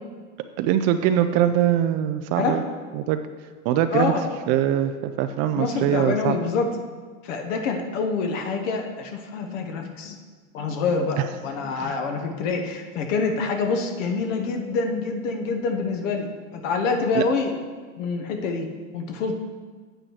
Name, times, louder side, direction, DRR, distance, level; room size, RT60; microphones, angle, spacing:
voice 1, 0.6-2.6 2.9-3.2 3.6-4.1 4.5-6.4 11.8-12.0 17.1-17.2, right 10 dB, 40° right, 9 dB, 0.5 m, -22 dB
voice 2, 3.9-4.3 5.5-6.7 7.2-10.2 10.5-17.5 18.0-18.7 18.9-19.4, left 4 dB, 65° left, 4 dB, 1.2 m, -26 dB
8.8 x 7.7 x 4.6 m, 1.5 s
hypercardioid pair, 115°, 41 cm